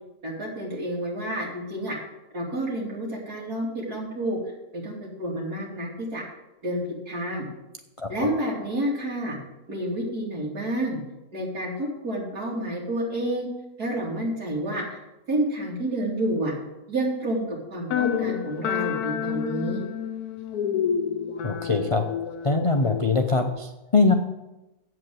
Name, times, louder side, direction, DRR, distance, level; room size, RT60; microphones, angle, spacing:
voice 1, 0.2-1.9 2.3-4.4 4.7-6.2 6.6-7.5 8.1-9.4 9.7-11.0 11.3-13.5 13.8-15.0 15.3-16.5 16.9-19.8, right 1 dB, 80° right, -3 dB, 3.5 m, -29 dB
voice 2, 8.0-8.3 21.4-22.0 22.4-24.1, left 3 dB, 40° left, 4 dB, 0.4 m, -22 dB
sound 1, 17.9-23.5, left 8 dB, 80° left, 1.2 m, -29 dB
8.3 x 7.8 x 7.7 m, 0.96 s
omnidirectional pair, 1.6 m